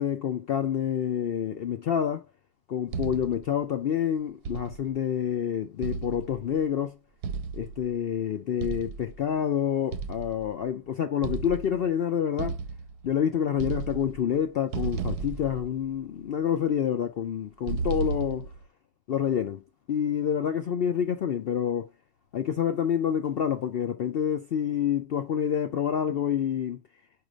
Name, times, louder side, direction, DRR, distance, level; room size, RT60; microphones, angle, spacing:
voice 1, 0.0-2.2 2.7-7.0 7.5-12.6 13.0-18.5 19.1-19.6 19.9-21.9 22.3-26.8, left 9 dB, 85° left, 0.5 m, -28 dB
sound 1, 2.9-3.5 4.4-5.0 5.8-6.6 7.2-8.0 8.6-9.2 9.9-10.7 11.2-11.9 12.4-13.2 13.5-14.4 14.7-16.2 17.7-18.6, right 5 dB, 85° right, 1.2 m, -34 dB
4.9 x 4.8 x 5.0 m
omnidirectional pair, 1.6 m